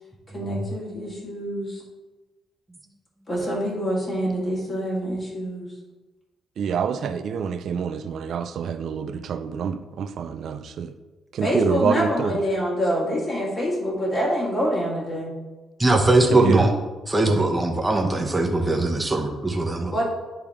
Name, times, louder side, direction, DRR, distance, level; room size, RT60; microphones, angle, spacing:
voice 1, 0.3-1.8 3.3-5.7 11.4-15.3 19.9-20.0, equal, 35° left, -5 dB, 2.2 m, -26 dB
voice 2, 6.6-10.9 11.4-12.3 16.5-16.6 17.4-17.5, right 7 dB, 65° right, 10 dB, 0.5 m, -27 dB
voice 3, 15.8-16.7 17.1-19.9, right 2 dB, 15° right, 1 dB, 0.9 m, -20 dB
10.0 x 3.4 x 3.5 m, 1.2 s
cardioid pair, 90°, 0 cm